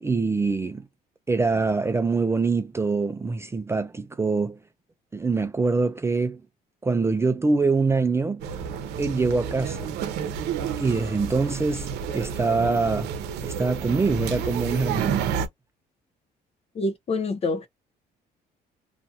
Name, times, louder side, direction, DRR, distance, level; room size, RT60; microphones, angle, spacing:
voice 1, 0.0-0.9 1.3-4.6 5.1-6.4 6.8-8.4 9.0-9.9 10.8-13.1 13.4-15.2, right 4 dB, 15° right, 0.4 m, -24 dB
sound 1, 8.4-15.5, right 7 dB, 85° right, 0.7 m, -30 dB
voice 2, 16.7-17.7, left 3 dB, 35° left, 0.7 m, -26 dB
2.5 x 2.5 x 2.7 m
cardioid pair, 110°, 17 cm